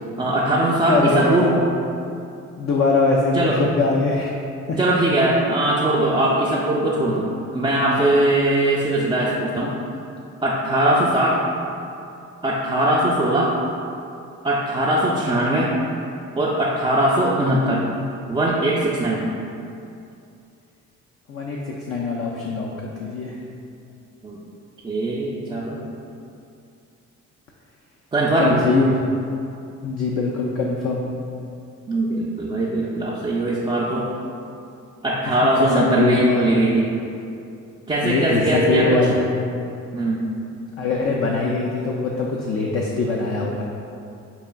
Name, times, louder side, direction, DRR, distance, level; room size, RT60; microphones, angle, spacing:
voice 1, 0.2-1.6 3.3-3.6 4.8-9.7 10.4-11.4 12.4-13.5 14.4-15.7 16.4-17.8 18.3-19.3 24.2-24.4 24.8-25.8 28.1-28.6 31.9-34.1 35.0-36.9 37.9-39.0 39.9-40.3, right 1 dB, 15° right, -6 dB, 0.4 m, -20 dB
voice 2, 0.9-1.6 2.6-4.3 4.7-4.8 21.3-23.4 28.4-29.0 29.8-31.1 35.4-36.5 38.0-39.2 40.8-43.6, left 3 dB, 50° left, -2 dB, 0.4 m, -22 dB
5.4 x 2.4 x 2.2 m, 2.6 s
cardioid pair, 90°, 30 cm